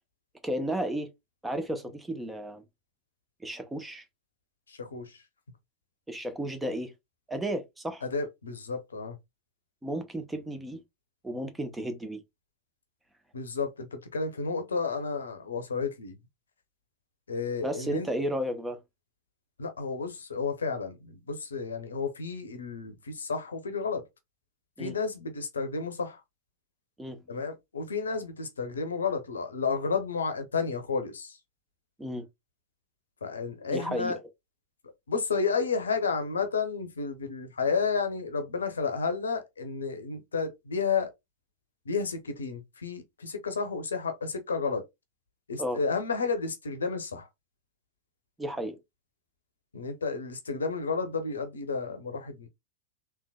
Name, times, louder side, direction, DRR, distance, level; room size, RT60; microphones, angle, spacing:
voice 1, 0.4-1.1 1.4-2.6 3.4-4.0 6.1-6.9 7.3-8.0 9.8-10.8 11.2-12.2 17.6-18.8 24.8-25.0 27.0-27.2 32.0-32.3 33.7-34.2 45.6-45.8 48.4-48.8, equal, 10° right, 0.7 m, -33 dB
voice 2, 4.7-5.2 8.0-9.2 13.3-16.1 17.3-18.1 19.6-24.0 24.8-26.2 27.3-31.4 33.2-34.2 35.1-41.1 41.9-44.8 45.5-47.3 49.7-52.5, left 5 dB, 70° left, 0.8 m, -31 dB
3.7 x 2.9 x 2.3 m
figure-of-eight pair, 90°, 0 cm